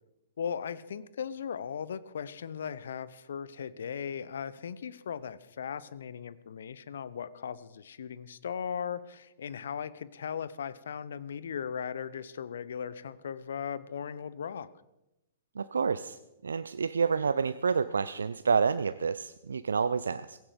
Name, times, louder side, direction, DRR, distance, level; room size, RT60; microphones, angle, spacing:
voice 1, 0.4-14.7, left 7 dB, 65° left, 17 dB, 0.9 m, -38 dB
voice 2, 15.6-20.4, right 5 dB, 75° right, 13 dB, 0.6 m, -29 dB
17.0 x 16.0 x 5.2 m, 0.92 s
figure-of-eight pair, 110°, 0 cm